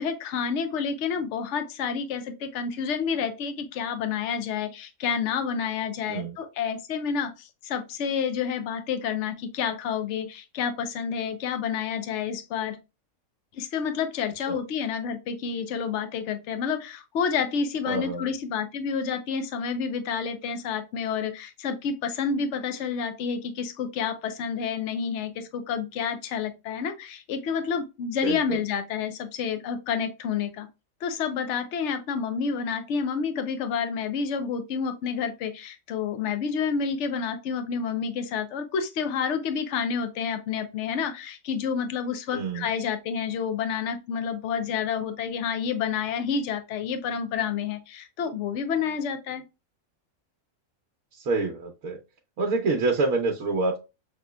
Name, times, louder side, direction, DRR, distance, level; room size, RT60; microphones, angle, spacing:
voice 1, 0.0-12.8 13.5-30.7 31.0-49.4, left 6 dB, 60° left, 8 dB, 0.9 m, -29 dB
voice 2, 17.8-18.3 28.2-28.6 42.3-42.7 51.1-52.0 52.4-53.8, right 3 dB, 75° right, 0 dB, 1.2 m, -27 dB
6.3 x 3.0 x 2.2 m, 0.27 s
omnidirectional pair, 1.5 m